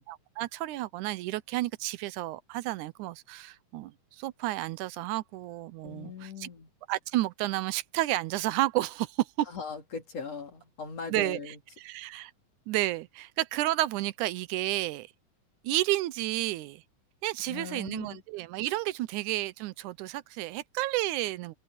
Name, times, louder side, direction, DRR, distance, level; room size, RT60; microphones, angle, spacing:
voice 1, 0.1-6.5 6.9-9.5 11.1-11.4 11.8-12.3 12.7-15.1 15.6-16.8 17.2-21.6, right 16 dB, 80° right, 2.1 m, -31 dB
voice 2, 5.8-6.7 9.5-11.6 17.4-18.2, left 5 dB, 55° left, 4.0 m, -40 dB
omnidirectional pair, 3.6 m